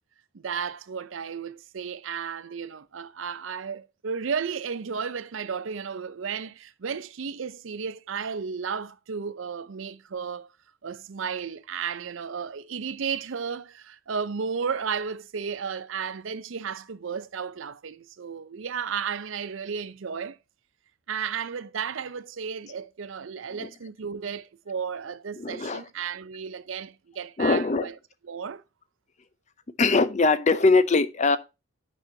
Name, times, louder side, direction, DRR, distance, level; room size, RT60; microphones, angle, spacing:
voice 1, 0.3-10.5 10.8-20.4 21.1-28.0 28.2-28.6, right 6 dB, 65° right, 0.5 m, -33 dB
voice 2, 25.4-25.8 27.4-27.9 29.8-31.4, left 3 dB, 35° left, 0.6 m, -21 dB
8.9 x 6.1 x 2.7 m
head